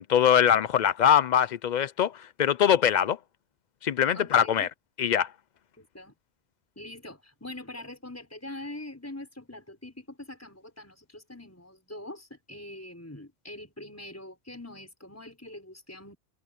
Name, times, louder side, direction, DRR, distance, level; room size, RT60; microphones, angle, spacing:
voice 1, 0.0-2.1 2.4-3.2 3.8-4.7 5.0-5.3, left 9 dB, 60° left, 0.5 m, -22 dB
voice 2, 4.1-4.7 5.8-6.1 6.8-16.2, left 1 dB, 15° left, 5.6 m, -43 dB
omnidirectional pair, 1.1 m